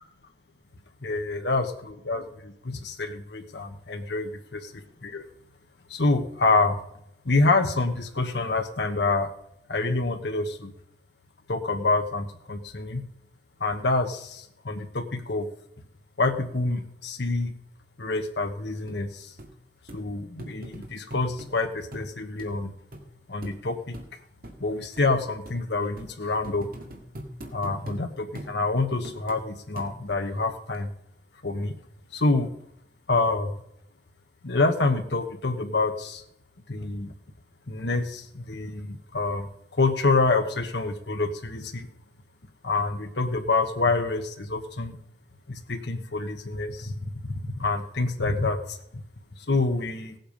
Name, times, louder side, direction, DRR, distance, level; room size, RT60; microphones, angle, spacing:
voice 1, 1.0-4.7 5.0-5.2 5.9-6.8 7.2-9.3 9.7-10.7 11.5-13.0 13.6-15.5 16.2-17.5 18.0-19.3 19.9-22.7 23.3-24.0 24.6-26.7 27.5-30.9 31.4-31.7 32.1-32.5 33.1-33.5 34.4-36.2 36.7-37.1 37.7-41.9 42.6-45.0 45.5-47.1 47.6-49.0 49.5-50.1, left 3 dB, 65° left, 5 dB, 1.1 m, -27 dB
sound 1, 18.9-19.0 19.4-19.5 19.9-20.0 20.4-21.5 21.9-22.1 22.4-22.5 22.9-23.0 23.4-23.6 23.9-24.1 24.4-24.6 25.0-25.1 25.4-25.6 26.0-26.1 26.4-28.0 28.3-28.5 29.0-29.4 29.8-30.2 30.7-30.8, equal, 55° right, 1.9 m, -40 dB
16.5 x 7.9 x 5.2 m, 0.76 s
head